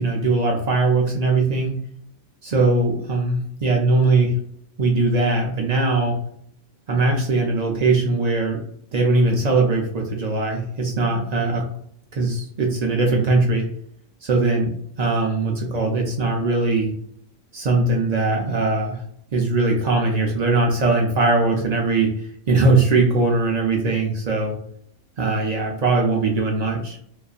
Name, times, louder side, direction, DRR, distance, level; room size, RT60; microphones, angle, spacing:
voice 1, 0.0-1.8 2.4-4.3 4.8-6.2 6.9-8.6 8.9-11.6 12.1-13.7 14.2-14.7 15.0-16.9 17.5-19.0 19.3-24.6 25.2-27.0, right 3 dB, 80° right, 0 dB, 0.3 m, -20 dB
2.6 x 2.3 x 2.3 m, 0.67 s
omnidirectional pair, 1.3 m